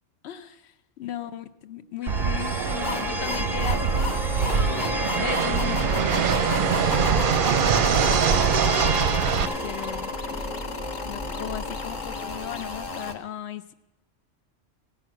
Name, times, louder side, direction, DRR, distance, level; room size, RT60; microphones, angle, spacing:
voice 1, 0.2-4.2 4.5-7.3 7.9-8.2 8.5-8.9 9.3-10.1 11.1-13.7, left 10 dB, 65° left, 12 dB, 0.8 m, -37 dB
sound 1, 2.0-13.1, left 1 dB, 5° right, 0.5 m, -33 dB
Fixed-wing aircraft airplane, 2.1-9.5, right 6 dB, 55° right, 0.7 m, -23 dB
sound 2, 2.8-13.1, left 3 dB, 40° left, 1.0 m, -34 dB
16.0 x 6.1 x 8.9 m, 0.95 s
omnidirectional pair, 1.3 m